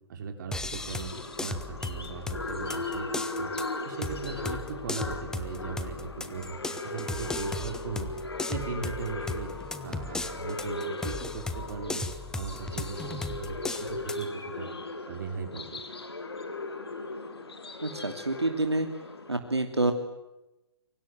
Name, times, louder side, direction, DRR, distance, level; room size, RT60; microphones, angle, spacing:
voice 1, 0.1-3.5 3.8-8.1 8.5-9.5 9.8-12.1 12.3-14.7 15.1-15.8, right 5 dB, 50° right, 5 dB, 4.7 m, -38 dB
sound 1, 0.5-14.2, left 3 dB, 5° left, 1.3 m, -37 dB
sound 2, 0.7-19.3, left 2 dB, 70° left, 3.5 m, -38 dB
voice 2, 17.8-18.9 19.3-19.9, right 2 dB, 80° right, 5 dB, 3.0 m, -27 dB
28.0 x 24.5 x 7.9 m, 0.97 s
figure-of-eight pair, 125°, 14 cm